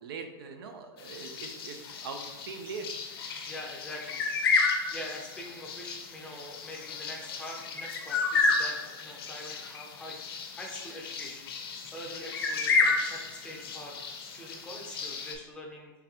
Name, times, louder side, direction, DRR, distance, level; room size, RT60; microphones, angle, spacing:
voice 1, 0.0-2.9, right 4 dB, 75° right, 6 dB, 0.6 m, -41 dB
sound 1, 1.0-15.3, left 4 dB, 80° left, 0.7 m, -32 dB
voice 2, 3.5-14.0 14.3-15.9, left 1 dB, 5° left, -1 dB, 0.5 m, -44 dB
3.8 x 3.3 x 2.9 m, 1.1 s
supercardioid pair, 150°, 13 cm